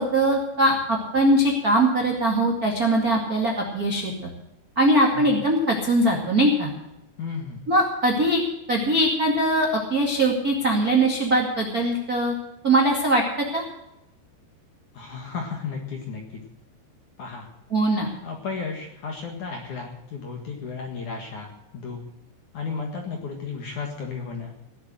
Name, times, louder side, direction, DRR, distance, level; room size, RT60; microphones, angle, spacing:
voice 1, 0.0-4.3 4.7-6.7 7.7-8.4 8.7-12.3 12.6-13.2 13.5-13.6 17.7-18.1, right 1 dB, 50° right, 0 dB, 1.1 m, -21 dB
voice 2, 7.2-7.7 14.9-16.4 17.2-17.5 18.2-22.0 22.5-24.6, left 5 dB, 55° left, 2 dB, 2.3 m, -34 dB
17.5 x 8.0 x 7.7 m, 0.89 s
omnidirectional pair, 5.7 m